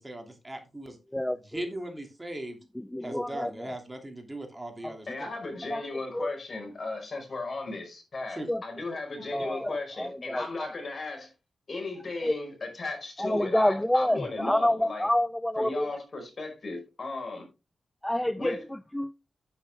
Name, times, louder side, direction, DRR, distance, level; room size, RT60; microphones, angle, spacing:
voice 1, 0.0-1.0 1.5-2.6 3.0-5.1 8.4-8.5, right 1 dB, 15° right, 2.8 m, -38 dB
voice 2, 1.1-1.6 2.8-3.7 4.8-4.9 5.7-5.8 6.1-6.3 8.5-8.6 9.3-10.7 12.2-12.3 13.2-15.9 18.0-19.1, left 1 dB, 10° left, 0.4 m, -28 dB
voice 3, 5.1-11.3 11.7-15.1 15.6-17.5 18.4-18.6, left 3 dB, 50° left, 5.0 m, -36 dB
9.3 x 8.6 x 3.5 m
cardioid pair, 70°, 0 cm